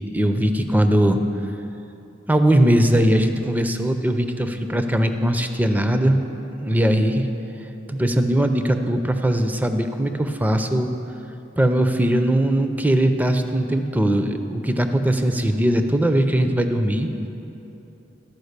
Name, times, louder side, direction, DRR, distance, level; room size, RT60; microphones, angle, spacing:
voice 1, 0.1-1.2 2.3-6.2 6.6-7.3 7.9-10.9 11.6-17.1, right 1 dB, 10° right, 7 dB, 0.4 m, -20 dB
12.0 x 5.0 x 6.6 m, 2.9 s
head